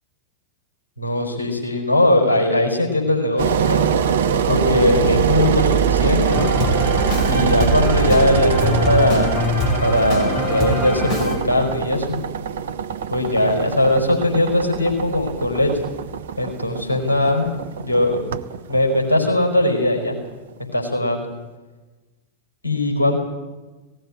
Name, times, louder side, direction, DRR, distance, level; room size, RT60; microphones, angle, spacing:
voice 1, 1.0-3.8 4.5-6.4 7.3-9.4 9.8-12.2 13.1-15.7 16.4-17.5 17.8-18.2 18.7-20.1 20.7-21.3 22.6-23.2, left 1 dB, 80° left, 1 dB, 4.9 m, -19 dB
Engine, 3.4-20.3, right 7 dB, 60° right, 1.0 m, -23 dB
sound 1, 6.2-11.4, left 1 dB, 35° left, 5.8 m, -23 dB
18.0 x 16.5 x 9.9 m, 1.2 s
figure-of-eight pair, 90°, 0 cm